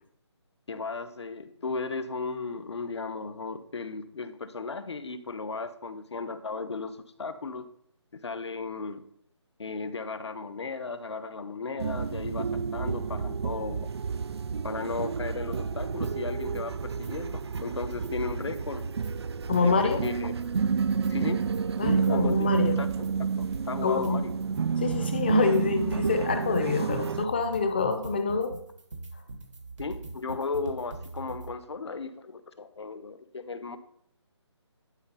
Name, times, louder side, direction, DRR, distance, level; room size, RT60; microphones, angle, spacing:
voice 1, 0.7-7.7 8.1-9.0 9.6-13.9 14.6-18.9 19.6-20.3 21.1-21.4 21.8-22.9 23.2-24.3 29.8-33.8, left 4 dB, 65° left, 11 dB, 1.0 m, -35 dB
sound 1, 11.8-27.3, right 6 dB, 60° right, 0.4 m, -30 dB
sound 2, 15.5-16.1 16.4-17.1 17.4-20.1 20.4-31.5, right 3 dB, 85° right, 1.9 m, -42 dB
voice 2, 19.5-20.0 21.8-22.8 23.8-24.2 24.8-28.5, left 4 dB, 20° left, 7 dB, 0.6 m, -26 dB
11.0 x 3.8 x 5.6 m, 0.68 s
hypercardioid pair, 170°, 15 cm